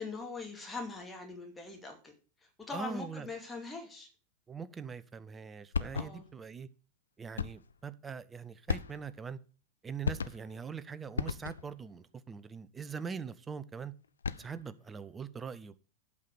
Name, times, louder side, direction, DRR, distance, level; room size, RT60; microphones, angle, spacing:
voice 1, 0.0-2.1 2.7-4.1 5.9-6.2, left 3 dB, 10° left, 2.4 m, -41 dB
voice 2, 2.7-3.3 4.5-6.7 7.2-9.4 9.8-13.9 14.4-15.8, right 6 dB, 15° right, 0.7 m, -42 dB
sound 1, 5.7-6.4 7.4-7.8 8.7-9.3 10.0-10.6 11.2-11.8 14.0-14.7, left 6 dB, 70° left, 0.5 m, -36 dB
8.5 x 5.8 x 6.5 m
figure-of-eight pair, 90°, 0 cm